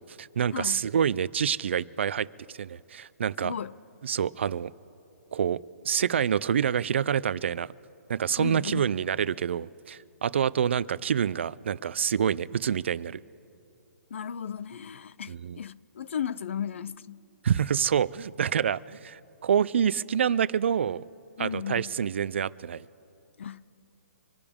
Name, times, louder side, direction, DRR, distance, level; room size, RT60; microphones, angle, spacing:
voice 1, 0.0-3.5 4.0-4.7 5.3-5.6 5.8-7.7 8.1-13.2 15.3-15.6 17.4-21.0 21.4-22.8, right 8 dB, 50° right, 0.4 m, -27 dB
voice 2, 0.5-0.8 3.4-3.8 8.4-8.9 14.1-17.2 21.4-21.9 23.4-23.7, left 8 dB, 50° left, 0.5 m, -35 dB
26.0 x 12.0 x 3.6 m
hypercardioid pair, 175°, 8 cm